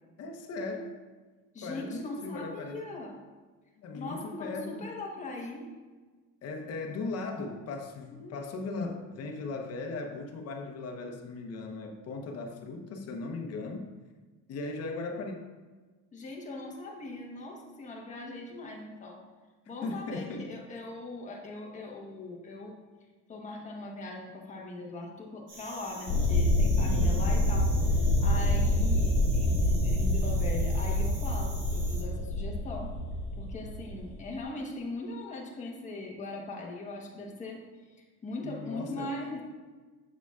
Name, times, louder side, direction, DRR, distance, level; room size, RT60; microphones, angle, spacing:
voice 1, 0.2-0.9 1.6-2.8 3.8-5.0 6.4-13.9 14.5-15.5 19.8-20.5 26.8-27.2 38.4-39.1, left 3 dB, 50° left, 3 dB, 0.9 m, -38 dB
voice 2, 1.5-3.2 3.9-5.7 8.1-8.5 16.1-19.2 19.7-22.7 23.3-32.9 33.4-37.6 37.9-39.4, left 2 dB, 20° left, -1 dB, 1.1 m, -40 dB
sound 1, 25.5-32.0, right 2 dB, 65° right, 1.7 m, -46 dB
sound 2, 26.1-34.3, left 1 dB, 90° left, 1.1 m, -26 dB
7.1 x 6.8 x 2.4 m, 1.3 s
cardioid pair, 145°, 33 cm